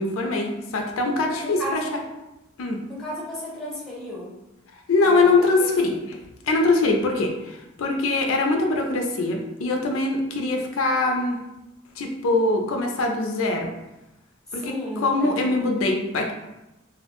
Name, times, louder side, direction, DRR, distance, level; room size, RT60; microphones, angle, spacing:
voice 1, 0.0-1.8 2.6-2.8 4.9-6.2 6.4-11.4 12.0-13.7 14.5-16.3, left 3 dB, 90° left, 2 dB, 0.4 m, -23 dB
voice 2, 1.3-2.0 2.9-4.4 5.0-5.3 14.6-15.4, equal, ahead, -7 dB, 0.7 m, -33 dB
2.4 x 2.1 x 2.8 m, 0.97 s
head